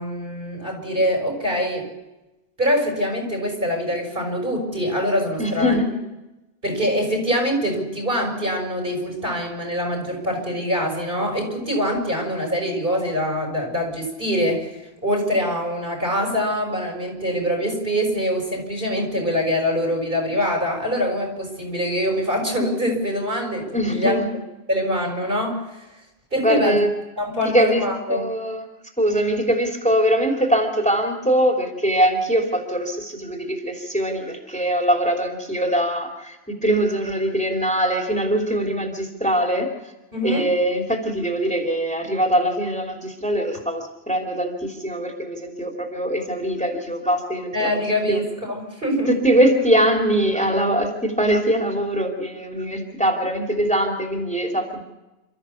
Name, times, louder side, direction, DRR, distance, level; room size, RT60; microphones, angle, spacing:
voice 1, 0.0-1.9 2.6-5.7 6.6-14.8 15.0-24.2 24.7-25.6 26.3-26.8 27.2-28.2 40.1-40.5 47.5-49.1, equal, 60° right, 1 dB, 6.4 m, -24 dB
voice 2, 5.4-5.9 23.7-24.3 26.4-26.9 27.5-27.8 28.1-28.7 29.0-36.4 36.6-39.7 40.2-47.7 48.1-48.2 49.1-54.8, equal, 5° left, 1 dB, 3.0 m, -22 dB
28.5 x 13.5 x 7.1 m, 1.0 s
omnidirectional pair, 1.0 m